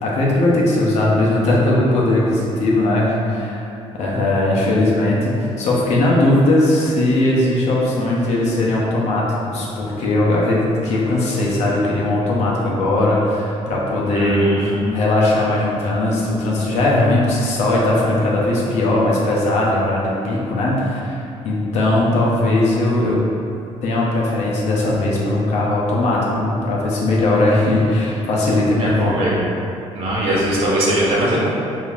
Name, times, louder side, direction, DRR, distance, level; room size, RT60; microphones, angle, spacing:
voice 1, 0.0-3.6 4.0-14.5 14.9-21.2 21.4-23.2 23.8-29.3, left 1 dB, 75° left, -4 dB, 0.8 m, -18 dB
voice 2, 14.1-14.9 28.8-29.4 29.9-31.5, right 1 dB, 55° right, -7 dB, 0.8 m, -20 dB
5.0 x 2.7 x 2.5 m, 2.7 s
cardioid pair, 175°, 11 cm